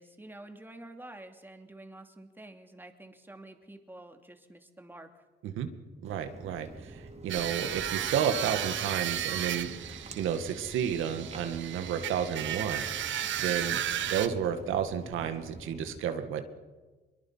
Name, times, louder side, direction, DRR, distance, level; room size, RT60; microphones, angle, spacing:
voice 1, 0.0-5.2, right 1 dB, 10° right, 5 dB, 2.7 m, -49 dB
Walk footsteps, 6.0-15.9, right 2 dB, 35° right, 3.7 m, -48 dB
voice 2, 6.0-9.7 10.2-13.1 13.4-13.8 14.1-16.4, right 8 dB, 85° right, 8 dB, 2.0 m, -31 dB
sound 1, 7.3-14.3, right 11 dB, 70° right, 1.3 m, -34 dB
24.5 x 22.5 x 5.7 m, 1.3 s
cardioid pair, 90°, 20 cm